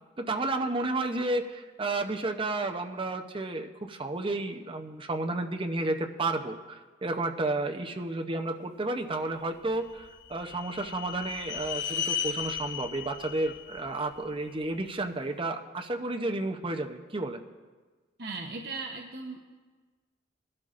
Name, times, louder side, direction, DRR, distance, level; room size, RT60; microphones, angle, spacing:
voice 1, 0.2-17.4, right 2 dB, 25° right, 4 dB, 0.7 m, -32 dB
sound 1, 9.6-14.8, left 8 dB, 75° left, 1.7 m, -36 dB
voice 2, 18.2-19.4, right 3 dB, 60° right, 2 dB, 0.8 m, -37 dB
20.5 x 12.0 x 2.5 m, 1.4 s
head